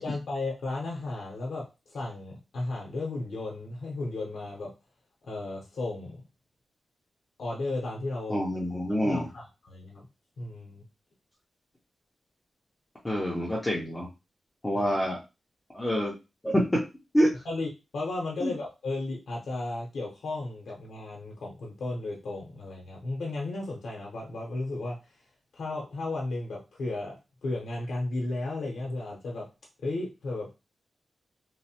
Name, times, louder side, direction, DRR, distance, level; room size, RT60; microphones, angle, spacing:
voice 1, 0.0-1.6 1.9-4.7 5.2-6.2 7.4-8.4 8.9-10.1 10.4-10.8 14.7-14.9 17.4-25.0 25.5-29.5 29.8-30.5, left 2 dB, 75° left, -1 dB, 0.7 m, -34 dB
voice 2, 8.3-9.3 13.0-14.1 14.6-15.2 15.7-16.1 16.4-16.6 17.1-17.3 18.4-18.5, equal, 10° left, -5 dB, 0.5 m, -26 dB
3.0 x 2.0 x 2.8 m, 0.27 s
wide cardioid pair, 170°, 0 cm